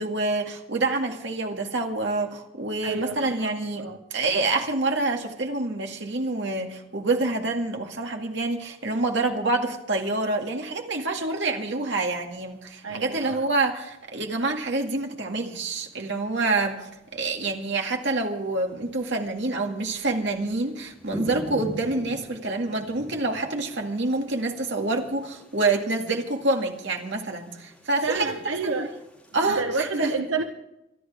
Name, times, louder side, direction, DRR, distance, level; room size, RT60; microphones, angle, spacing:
voice 1, 0.0-3.8 4.1-28.3 28.6-28.9 29.3-29.6 30.0-30.1, right 2 dB, 65° right, 2 dB, 2.2 m, -27 dB
voice 2, 2.8-3.4 3.8-4.0 12.8-13.4 16.4-16.5 28.0-28.9 29.4-30.4, right 4 dB, 85° right, 4 dB, 1.1 m, -29 dB
sound 1, 12.2-29.5, equal, 5° left, 3.1 m, -46 dB
26.0 x 11.5 x 3.6 m, 0.86 s
head